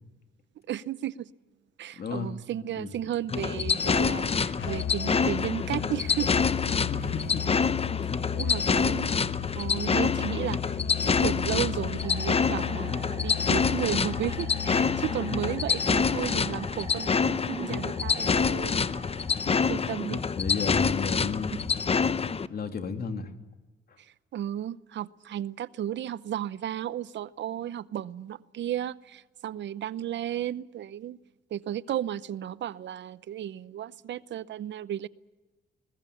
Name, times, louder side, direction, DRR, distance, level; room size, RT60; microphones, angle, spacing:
voice 1, 0.7-1.3 1.8-6.5 8.3-9.1 9.5-10.7 11.0-18.8 19.7-20.2 24.3-31.2 31.5-35.1, right 11 dB, 65° right, 17 dB, 0.8 m, -34 dB
voice 2, 1.9-2.3 2.8-3.0 6.9-7.6 8.2-8.6 19.4-19.8 20.4-21.7 22.5-23.3 23.9-24.0, left 5 dB, 50° left, 6 dB, 2.8 m, -33 dB
sound 1, 3.3-22.5, left 5 dB, 30° left, 0.8 m, -27 dB
Musical instrument, 4.6-16.3, left 11 dB, 75° left, 1.4 m, -36 dB
sound 2, 12.0-20.8, right 3 dB, 25° right, 5.0 m, -45 dB
22.0 x 20.5 x 8.4 m, 1.1 s
cardioid pair, 90°, 20 cm